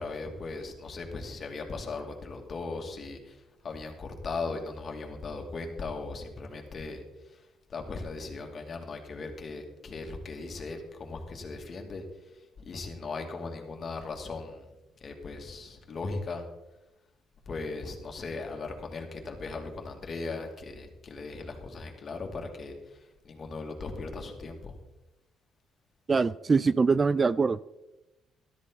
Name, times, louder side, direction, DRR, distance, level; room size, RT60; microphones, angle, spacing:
voice 1, 0.0-12.0 12.3-14.7 15.0-16.4 17.5-24.8, left 3 dB, 40° left, 3 dB, 2.5 m, -38 dB
voice 2, 26.1-27.6, right 4 dB, 30° right, 18 dB, 0.3 m, -23 dB
13.5 x 13.0 x 4.0 m, 1.0 s
cardioid pair, 110°, 0 cm